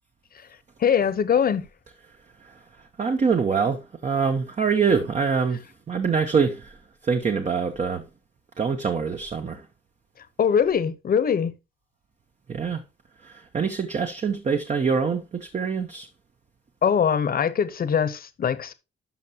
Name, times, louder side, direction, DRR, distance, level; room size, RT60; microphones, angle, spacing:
voice 1, 0.8-1.6 10.4-11.5 16.8-18.7, left 7 dB, 50° left, 1.0 m, -22 dB
voice 2, 3.0-5.6 5.9-6.8 7.0-8.0 8.6-9.7 12.5-12.8 13.2-16.1, right 5 dB, 35° right, 1.0 m, -24 dB
12.5 x 5.5 x 2.9 m
cardioid pair, 90°, 20 cm